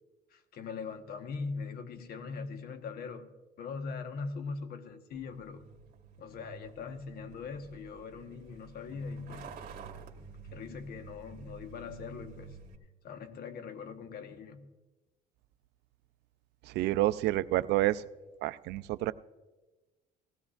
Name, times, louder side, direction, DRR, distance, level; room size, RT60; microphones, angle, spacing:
voice 1, 0.3-3.3 3.6-5.6 6.2-9.5 10.5-12.5 13.0-14.7, left 5 dB, 65° left, 7 dB, 1.2 m, -41 dB
Truck, 5.1-12.8, right 6 dB, 60° right, 1.6 m, -50 dB
voice 2, 16.7-18.1 18.4-19.1, right 16 dB, 80° right, 16 dB, 0.5 m, -29 dB
19.0 x 15.5 x 2.5 m, 1.2 s
cardioid pair, 110°, 17 cm